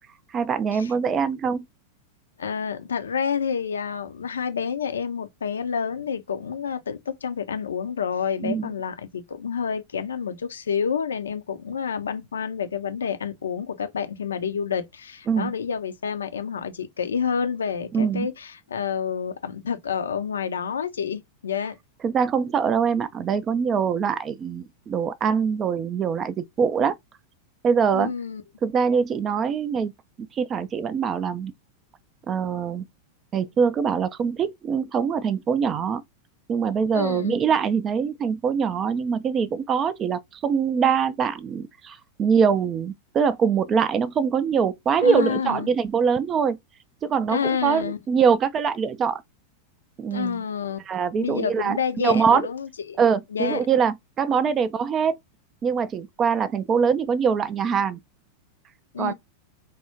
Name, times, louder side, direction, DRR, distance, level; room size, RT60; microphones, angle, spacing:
voice 1, 0.3-1.6 8.4-8.7 15.3-15.5 17.9-18.3 22.0-27.0 27.6-28.1 28.6-29.9 30.2-31.5 32.3-32.8 33.3-36.0 36.5-46.6 47.0-49.2 50.0-50.4 50.9-52.5 53.0-55.1 55.6-58.0 59.0-59.1, right 6 dB, 25° right, 0.3 m, -23 dB
voice 2, 2.4-21.7 27.9-28.4 36.9-37.3 45.0-45.7 47.3-48.0 50.1-50.8 51.2-53.0 53.3-53.6 58.9-59.1, left 7 dB, 70° left, 0.4 m, -28 dB
3.4 x 2.0 x 2.7 m
figure-of-eight pair, 90°, 0 cm